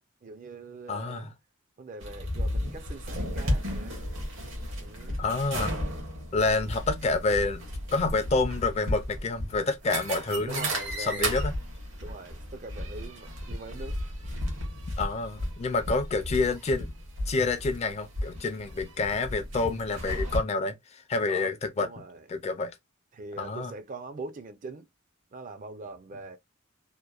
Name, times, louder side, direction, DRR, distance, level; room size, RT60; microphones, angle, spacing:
voice 1, 0.0-1.3 1.8-4.0 4.8-5.2 6.5-6.7 10.5-11.4 12.0-14.0 21.3-21.5 21.8-22.2 23.1-24.9 25.3-26.4, right 3 dB, 40° right, 0.4 m, -42 dB
voice 2, 0.9-1.3 5.2-5.8 6.3-7.7 7.9-10.7 11.0-11.5 15.0-17.0 17.3-21.9 22.3-22.7 23.4-23.7, left 3 dB, 30° left, 0.4 m, -28 dB
sound 1, 2.0-20.4, equal, 75° right, 1.1 m, -34 dB
2.9 x 2.1 x 2.3 m
head